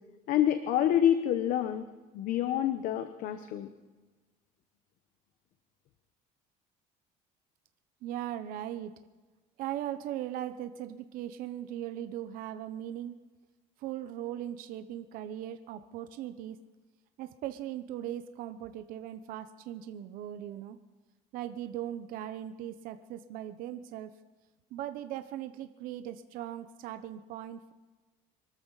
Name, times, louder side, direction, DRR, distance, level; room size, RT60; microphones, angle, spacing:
voice 1, 0.3-1.9 2.1-3.7, left 10 dB, 65° left, 9 dB, 1.0 m, -27 dB
voice 2, 8.0-8.9 9.6-13.1 13.8-16.6 17.2-20.8 21.3-24.1 24.7-27.7, right 11 dB, 70° right, 9 dB, 0.9 m, -39 dB
24.5 x 13.5 x 4.1 m, 1.2 s
cardioid pair, 140°, 15 cm